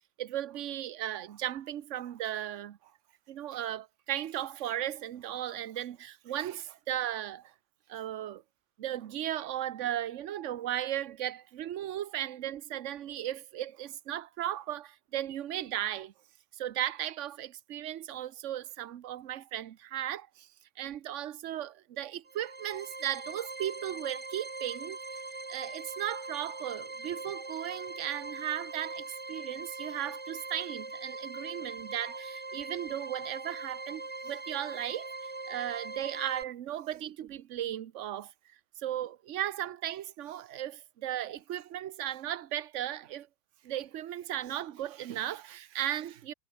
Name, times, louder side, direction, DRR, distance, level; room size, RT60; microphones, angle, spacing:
voice 1, 0.2-2.9 3.3-7.5 7.9-8.4 8.8-16.1 16.5-20.5 20.8-25.0 25.5-38.3 38.8-43.3 43.6-46.3, right 12 dB, 55° right, 1.0 m, -36 dB
sound 1, 22.3-36.4, right 3 dB, 20° right, 1.4 m, -41 dB
omnidirectional pair, 1.8 m